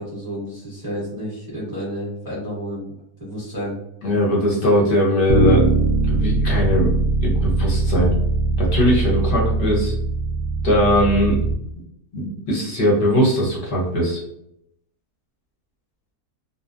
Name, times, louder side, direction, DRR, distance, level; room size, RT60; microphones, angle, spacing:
voice 1, 0.0-2.9 3.2-3.8, equal, 20° right, -8 dB, 0.6 m, -30 dB
voice 2, 4.0-5.6 6.0-6.9 7.2-8.1 8.6-9.9 10.6-11.4 12.1-14.2, equal, 55° left, -3 dB, 0.6 m, -20 dB
Bass guitar, 5.3-11.5, right 3 dB, 70° right, 0.6 m, -20 dB
2.7 x 2.0 x 2.4 m, 0.78 s
omnidirectional pair, 1.6 m